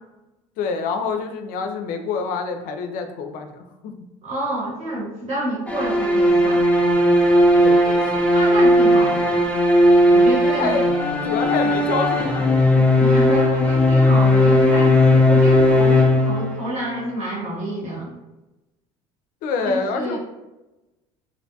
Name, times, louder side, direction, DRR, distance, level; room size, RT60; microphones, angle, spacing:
voice 1, 0.6-3.9 7.6-8.3 10.4-10.9 11.3-12.5 12.8-12.9 19.4-20.2, left 4 dB, 65° left, 6 dB, 0.4 m, -26 dB
voice 2, 4.2-6.6 8.3-9.5 10.1-10.8 13.0-18.1 19.7-20.2, right 1 dB, 45° right, -6 dB, 1.3 m, -28 dB
sound 1, 5.7-16.8, left 1 dB, 10° left, 0.5 m, -16 dB
2.6 x 2.1 x 2.6 m, 1.0 s
supercardioid pair, 75°, 16 cm